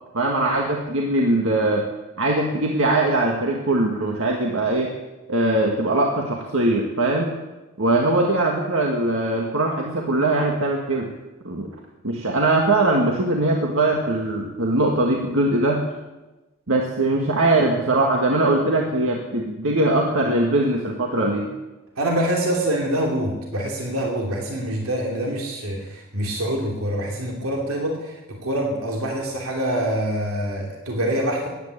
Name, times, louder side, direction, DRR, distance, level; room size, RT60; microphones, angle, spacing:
voice 1, 0.1-1.9 2.2-4.9 5.3-7.3 7.8-11.1 11.5-11.7 12.0-15.8 16.7-21.5, right 2 dB, 70° right, 0 dB, 1.9 m, -21 dB
voice 2, 22.0-28.0 28.3-31.5, right 1 dB, 90° right, 0 dB, 2.9 m, -25 dB
15.0 x 10.0 x 8.9 m, 1.1 s
head